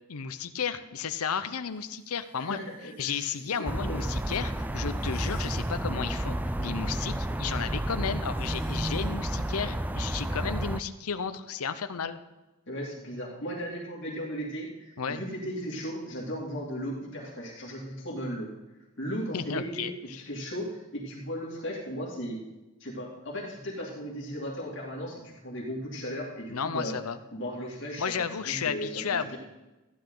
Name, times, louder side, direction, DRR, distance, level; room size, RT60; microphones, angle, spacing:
voice 1, 0.1-2.6 3.0-12.2 15.0-15.2 19.3-20.2 26.5-27.2 28.0-29.4, left 6 dB, 80° left, 11 dB, 0.7 m, -33 dB
sound 1, 1.6-3.7 5.0-6.1 8.2-9.3, equal, 10° left, 3.1 m, -52 dB
voice 2, 2.4-2.8 3.0-3.3 3.6-4.0 12.7-18.5 19.0-22.4 22.8-27.0 27.3-29.4, equal, 55° left, -3 dB, 2.6 m, -36 dB
sound 2, 3.6-10.8, right 1 dB, 5° right, 0.4 m, -31 dB
15.0 x 10.5 x 3.9 m, 1.1 s
head